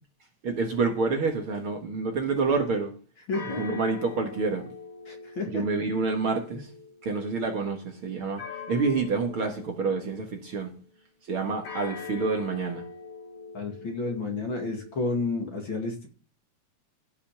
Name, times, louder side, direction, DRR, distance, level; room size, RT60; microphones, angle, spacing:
voice 1, 0.4-2.9 3.6-4.7 5.5-6.7 7.0-8.4 8.7-10.7 11.3-12.8, right 4 dB, 50° right, 2.2 m, -28 dB
sound 1, 0.6-2.1 3.3-10.8 11.6-15.3, left 5 dB, 70° left, 3.7 m, -44 dB
voice 2, 3.3-3.6 5.1-5.6 6.5-6.6 13.5-16.1, left 3 dB, 45° left, 2.6 m, -31 dB
15.5 x 5.8 x 5.8 m
omnidirectional pair, 3.4 m